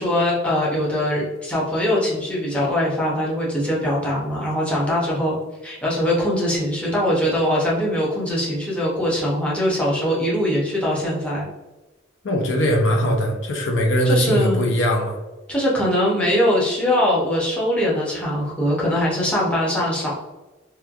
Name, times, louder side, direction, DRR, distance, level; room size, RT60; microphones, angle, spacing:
voice 1, 0.0-5.4 5.6-11.5 14.0-14.7 15.5-20.1, equal, 5° left, -6 dB, 0.7 m, -22 dB
voice 2, 12.2-15.2, equal, 70° left, 1 dB, 0.5 m, -20 dB
3.1 x 2.2 x 2.3 m, 1.1 s
head